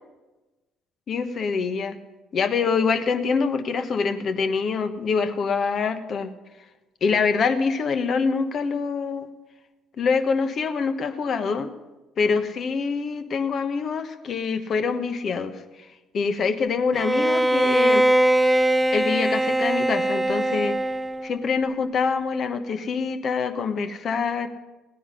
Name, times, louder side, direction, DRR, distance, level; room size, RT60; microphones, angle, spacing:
voice 1, 1.1-2.0 2.3-6.3 7.0-9.3 10.0-11.7 12.2-15.6 16.1-18.0 18.9-20.8 21.2-24.5, left 5 dB, 50° left, 9 dB, 1.2 m, -25 dB
Bowed string instrument, 16.9-21.4, right 1 dB, 10° right, 0.7 m, -21 dB
16.5 x 10.0 x 5.6 m, 1.1 s
hypercardioid pair, 55°, 0 cm